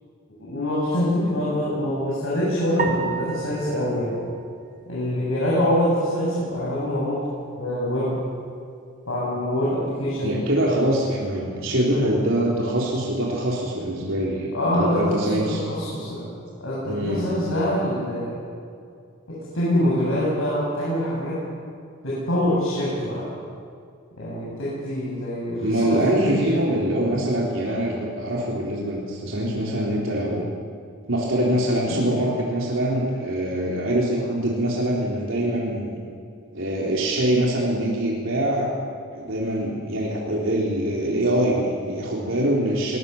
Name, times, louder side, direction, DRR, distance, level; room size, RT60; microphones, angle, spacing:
voice 1, 0.4-4.2 4.9-7.2 7.6-8.1 9.1-10.4 14.5-16.2 16.6-18.3 19.3-21.4 22.0-23.3 24.2-26.6 31.9-32.1, left 1 dB, 80° left, -8 dB, 7.3 m, -25 dB
sound 1, 2.8-5.3, right 6 dB, 35° right, 1.8 m, -33 dB
voice 2, 10.2-15.6 16.8-17.4 25.6-30.5 31.1-36.0 36.5-38.7 39.1-43.0, right 1 dB, 70° right, -4 dB, 3.5 m, -24 dB
22.5 x 20.5 x 7.0 m, 2.3 s
head